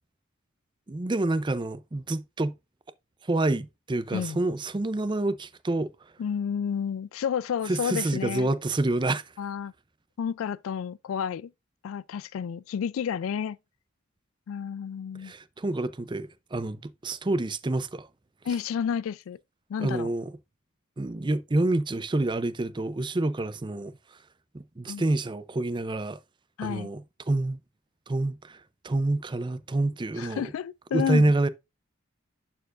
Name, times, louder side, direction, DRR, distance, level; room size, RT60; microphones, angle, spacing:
voice 1, 0.9-2.5 3.2-5.9 7.7-9.2 15.2-18.1 19.8-20.3 21.0-23.9 24.5-26.2 26.6-27.6 28.1-30.5 30.9-31.5, right 2 dB, 20° right, 0.5 m, -27 dB
voice 2, 6.2-8.5 9.4-9.7 10.2-11.5 11.8-13.6 14.5-15.3 18.4-19.4 19.7-20.1 24.9-25.1 26.6-26.9 30.2-31.3, left 7 dB, 75° left, 0.3 m, -31 dB
11.0 x 4.4 x 2.5 m
head